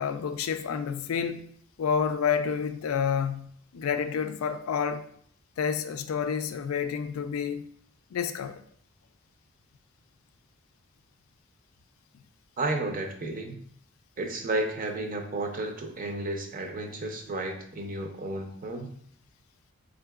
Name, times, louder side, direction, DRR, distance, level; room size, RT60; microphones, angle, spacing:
voice 1, 0.0-1.5 1.8-5.0 5.6-7.7 8.1-8.6, left 7 dB, 85° left, 0.3 m, -29 dB
voice 2, 12.6-13.6 14.2-18.9, right 2 dB, 40° right, 0.5 m, -32 dB
3.8 x 3.7 x 2.3 m
head